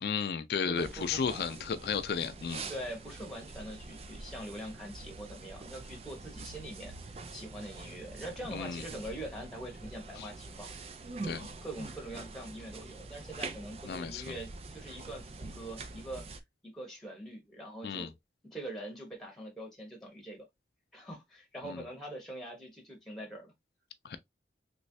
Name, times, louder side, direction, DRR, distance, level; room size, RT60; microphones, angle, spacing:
voice 1, 0.0-2.6 8.5-8.8 10.2-10.3 11.2-11.5 13.9-14.2 17.8-18.1 21.6-21.8 24.0-24.2, left 6 dB, 65° left, 0.4 m, -33 dB
voice 2, 0.6-1.8 2.7-10.7 11.3-16.3 16.6-18.1 18.5-20.5 20.9-23.5, right 1 dB, ahead, 1.0 m, -43 dB
sound 1, 0.7-16.4, right 3 dB, 35° right, 0.4 m, -45 dB
3.1 x 3.1 x 2.6 m
head